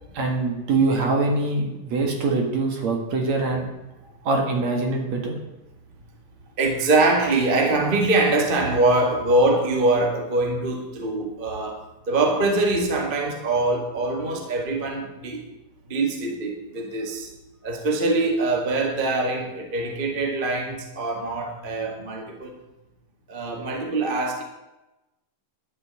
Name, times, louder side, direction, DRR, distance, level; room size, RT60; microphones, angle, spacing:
voice 1, 0.1-3.7 4.2-5.3, right 3 dB, 55° right, 2 dB, 2.9 m, -23 dB
voice 2, 6.6-15.4 15.9-17.3 17.6-22.5 23.3-24.4, right 2 dB, 20° right, 1 dB, 1.3 m, -23 dB
12.0 x 6.7 x 8.8 m, 0.98 s
omnidirectional pair, 4.0 m